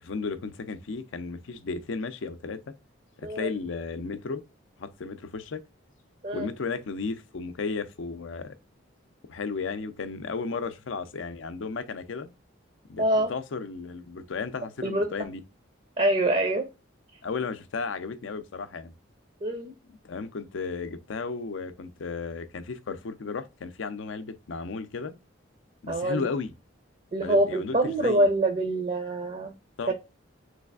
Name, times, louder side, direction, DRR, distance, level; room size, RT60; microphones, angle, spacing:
voice 1, 0.0-2.7 3.2-4.4 4.8-5.6 6.3-8.6 9.3-12.3 12.9-15.4 17.2-18.9 19.9-25.1 25.8-26.5 27.2-28.3 29.8-29.9, left 4 dB, 70° left, 0.5 m, -34 dB
voice 2, 13.0-13.3 14.8-15.1 16.0-16.6 19.4-19.7 25.9-26.3 27.1-29.5 29.9-30.0, right 1 dB, 35° right, 0.5 m, -25 dB
3.3 x 3.2 x 2.3 m
head